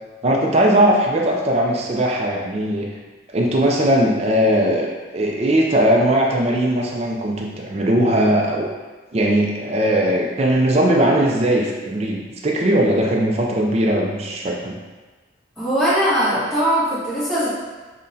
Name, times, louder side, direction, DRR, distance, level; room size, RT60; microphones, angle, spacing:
voice 1, 0.2-2.9 3.3-8.7 9.1-14.8, right 1 dB, 35° right, -1 dB, 0.4 m, -19 dB
voice 2, 15.6-17.5, equal, ahead, -14 dB, 1.3 m, -20 dB
5.4 x 2.2 x 2.7 m, 1.3 s
head